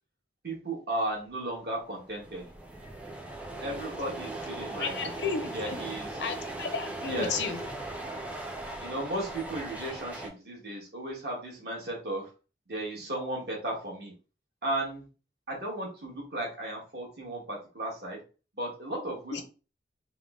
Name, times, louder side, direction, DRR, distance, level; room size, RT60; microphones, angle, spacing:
voice 1, 0.4-2.5 3.6-4.9 5.5-6.1 7.1-7.3 8.8-12.3 12.7-14.1 14.6-15.0 15.5-18.2 18.6-19.4, right 1 dB, 60° right, -2 dB, 1.4 m, -35 dB
sound 1, 1.5-1.6 1.8-10.3, right 2 dB, 5° right, 0.4 m, -39 dB
voice 2, 4.8-5.8 6.2-7.6 19.3-19.4, left 5 dB, 80° left, 7 dB, 0.6 m, -33 dB
3.6 x 2.1 x 3.6 m, 0.35 s
head